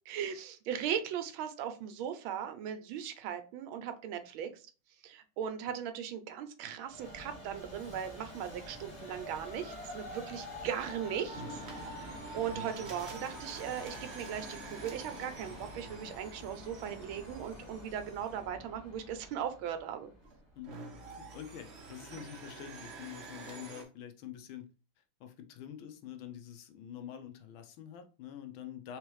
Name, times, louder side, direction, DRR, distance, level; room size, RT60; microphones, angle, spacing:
voice 1, 0.1-4.6 5.0-20.1, right 9 dB, 80° right, 1.4 m, -38 dB
Train, 6.9-20.3, left 1 dB, 30° left, 0.9 m, -47 dB
sound 1, 8.3-9.2 11.3-18.4 20.2-23.8, right 3 dB, 65° right, 0.6 m, -49 dB
voice 2, 21.2-24.7 25.2-29.0, left 10 dB, 80° left, 1.4 m, -46 dB
3.7 x 3.2 x 3.1 m
omnidirectional pair, 2.3 m